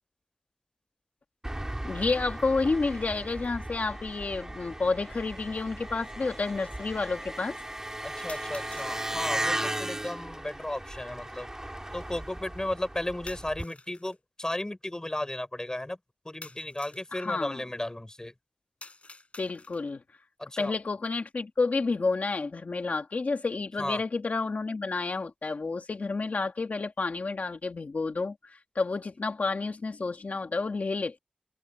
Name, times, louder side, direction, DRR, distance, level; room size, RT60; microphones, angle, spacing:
Engine, 1.4-13.6, right 1 dB, 20° right, 4.7 m, -36 dB
voice 1, 1.8-7.6 17.1-17.6 19.4-20.0 20.6-31.2, left 3 dB, 85° left, 2.0 m, -30 dB
sound 1, 3.9-4.0 5.0-5.1 8.3-9.0 13.3-14.2 16.4-17.1 18.8-20.0, left 3 dB, 55° left, 5.6 m, -49 dB
voice 2, 8.0-11.5 11.9-16.0 16.2-18.3 20.4-20.7 23.8-24.0, left 1 dB, 25° left, 5.9 m, -34 dB
wide cardioid pair, 65°, 3 cm